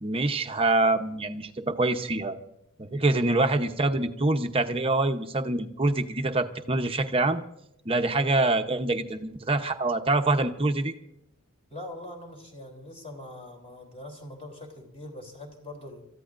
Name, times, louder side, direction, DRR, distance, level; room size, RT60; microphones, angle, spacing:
voice 1, 0.0-2.4 2.8-7.4 7.8-10.9, right 2 dB, 25° right, 6 dB, 0.9 m, -25 dB
voice 2, 11.7-16.0, left 1 dB, 25° left, 1 dB, 3.3 m, -42 dB
29.0 x 14.5 x 2.6 m, 0.83 s
head